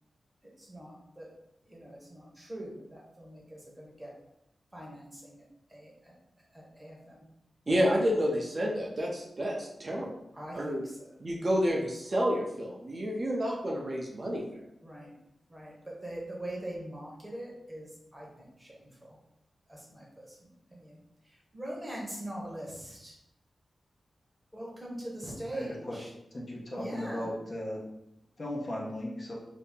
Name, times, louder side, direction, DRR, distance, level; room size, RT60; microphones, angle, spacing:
voice 1, 0.4-1.3 1.6-4.1 4.7-7.2 10.3-11.2 14.8-15.1 15.5-19.2 19.7-23.2 24.5-26.1 26.7-27.3, right 1 dB, 10° right, -3 dB, 0.9 m, -43 dB
voice 2, 7.7-10.1 10.5-10.8 11.2-14.4, equal, 35° right, -2 dB, 0.5 m, -29 dB
voice 3, 25.5-26.0 26.3-27.8 28.4-29.3, left 1 dB, 40° left, -3 dB, 0.7 m, -36 dB
2.8 x 2.7 x 3.6 m, 0.83 s
wide cardioid pair, 130°, 0 cm